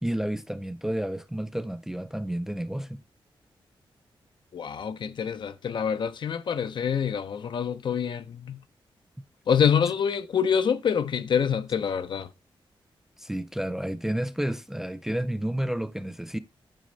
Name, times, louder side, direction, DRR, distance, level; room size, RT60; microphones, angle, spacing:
voice 1, 0.0-3.0 13.2-16.4, right 1 dB, 5° right, 0.3 m, -30 dB
voice 2, 4.5-8.6 9.5-12.3, left 7 dB, 60° left, 0.5 m, -26 dB
9.1 x 4.2 x 3.9 m
wide cardioid pair, 165°, 9 cm